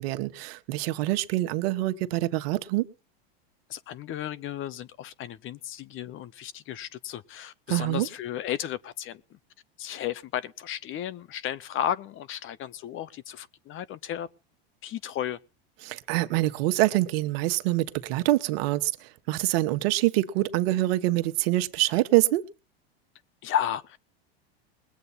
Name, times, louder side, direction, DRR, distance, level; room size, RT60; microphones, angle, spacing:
voice 1, 0.0-2.9 7.7-8.1 15.8-22.4, right 17 dB, 70° right, 1.3 m, -25 dB
voice 2, 3.7-9.4 9.8-14.3 14.8-15.4 23.4-24.1, left 10 dB, 40° left, 0.9 m, -34 dB
21.0 x 8.3 x 4.2 m
hypercardioid pair, 105°, 32 cm